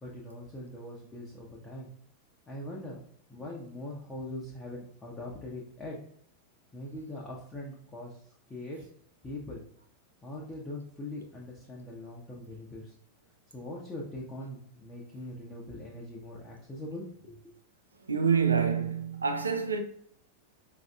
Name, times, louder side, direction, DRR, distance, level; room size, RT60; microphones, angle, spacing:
voice 1, 0.0-1.9 2.5-3.0 3.3-6.0 6.7-8.2 8.5-8.9 9.2-9.6 10.2-12.9 13.5-17.5, left 1 dB, 15° left, 0.7 m, -42 dB
voice 2, 18.1-19.8, right 6 dB, 75° right, 0.4 m, -27 dB
4.9 x 2.5 x 2.3 m
figure-of-eight pair, 90°, 0 cm